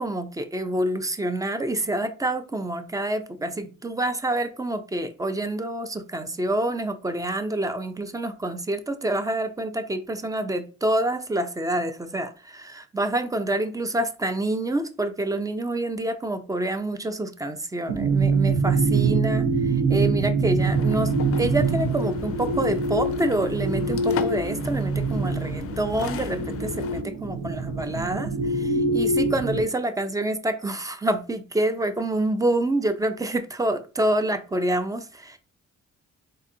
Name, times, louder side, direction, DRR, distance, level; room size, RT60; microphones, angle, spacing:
voice 1, 0.0-35.4, right 1 dB, 10° right, 0.4 m, -27 dB
sound 1, 17.9-29.6, right 3 dB, 75° right, 0.9 m, -24 dB
sound 2, 20.6-27.0, left 8 dB, 50° left, 0.4 m, -35 dB
3.9 x 2.6 x 2.6 m
cardioid pair, 90°, 30 cm